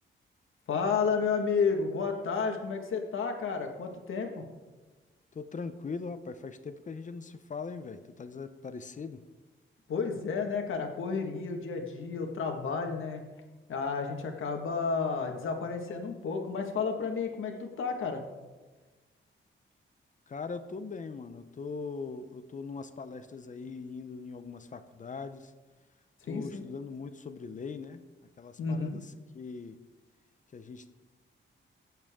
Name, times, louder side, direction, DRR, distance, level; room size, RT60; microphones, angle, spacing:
voice 1, 0.7-4.4 9.9-13.2 13.7-18.2 26.3-26.6 28.6-29.0, left 5 dB, 85° left, 3 dB, 1.8 m, -31 dB
voice 2, 5.3-9.2 20.3-25.5 26.2-28.0 28.4-29.8 30.5-30.9, left 4 dB, 40° left, 11 dB, 0.7 m, -41 dB
22.5 x 8.0 x 3.7 m, 1.2 s
wide cardioid pair, 145°, 20 cm